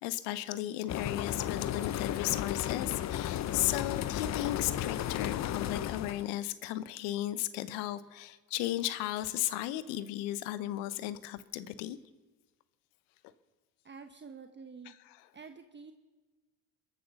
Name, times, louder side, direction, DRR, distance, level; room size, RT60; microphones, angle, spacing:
voice 1, 0.0-12.0 14.9-15.3, left 14 dB, 70° left, 16 dB, 0.9 m, -35 dB
sound 1, 0.9-6.3, left 11 dB, 40° left, 0.6 m, -34 dB
voice 2, 13.8-14.9 15.3-15.9, right 5 dB, 25° right, 7 dB, 1.1 m, -48 dB
22.5 x 8.5 x 6.9 m, 1.3 s
hypercardioid pair, 65°, 44 cm